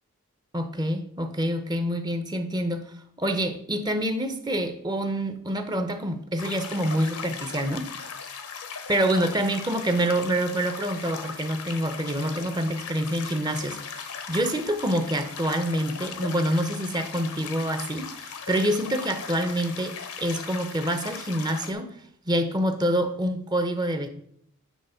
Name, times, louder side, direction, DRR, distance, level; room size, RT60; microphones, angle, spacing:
voice 1, 0.5-8.1 8.9-22.0 22.3-24.1, right 1 dB, 20° right, 8 dB, 0.7 m, -27 dB
sound 1, 6.4-21.7, left 6 dB, 75° left, 0.9 m, -38 dB
9.2 x 3.5 x 5.6 m, 0.66 s
head